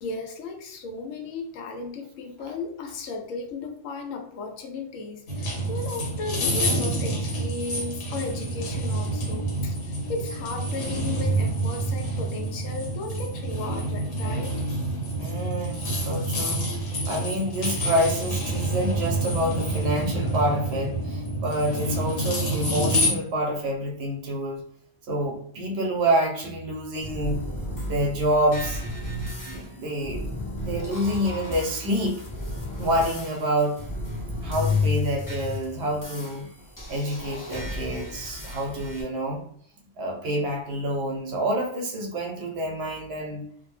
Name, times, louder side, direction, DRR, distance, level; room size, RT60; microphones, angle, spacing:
voice 1, 0.0-14.6, left 3 dB, 90° left, 4 dB, 1.0 m, -35 dB
sound 1, 5.3-23.1, right 1 dB, 75° left, 1.1 m, -28 dB
voice 2, 15.2-24.6 25.1-27.4 27.8-28.8 29.5-30.3 30.6-32.2 32.8-33.8 34.4-36.5 36.9-39.4 40.0-43.5, right 1 dB, 65° right, 1 dB, 0.8 m, -27 dB
sound 2, 27.0-39.0, left 2 dB, 25° left, 0.4 m, -32 dB
2.5 x 2.1 x 3.1 m, 0.63 s
omnidirectional pair, 1.3 m